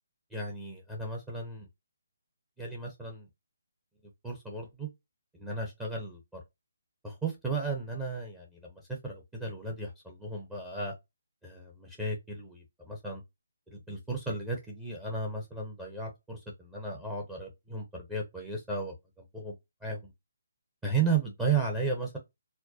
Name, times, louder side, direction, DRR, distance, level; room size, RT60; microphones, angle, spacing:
voice 1, 0.3-1.7 2.6-3.3 4.2-4.9 5.3-6.4 7.0-10.9 11.4-13.2 13.7-20.1 20.8-22.2, right 4 dB, 10° right, 0.8 m, -34 dB
4.3 x 2.1 x 2.8 m
figure-of-eight pair, 150°, 0 cm